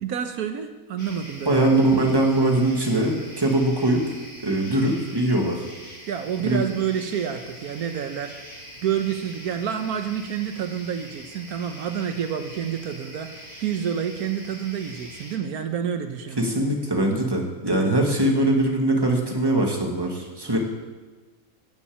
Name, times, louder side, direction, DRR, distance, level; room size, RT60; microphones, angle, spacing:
voice 1, 0.0-1.7 6.1-8.3 8.8-16.4, right 8 dB, 80° right, 7 dB, 1.4 m, -28 dB
sound 1, 1.0-15.4, equal, 35° left, 3.5 m, -43 dB
voice 2, 1.5-4.0 4.4-5.6 6.4-6.6 16.4-20.6, right 1 dB, 15° right, 1 dB, 2.0 m, -21 dB
13.0 x 7.1 x 8.6 m, 1.3 s
omnidirectional pair, 1.6 m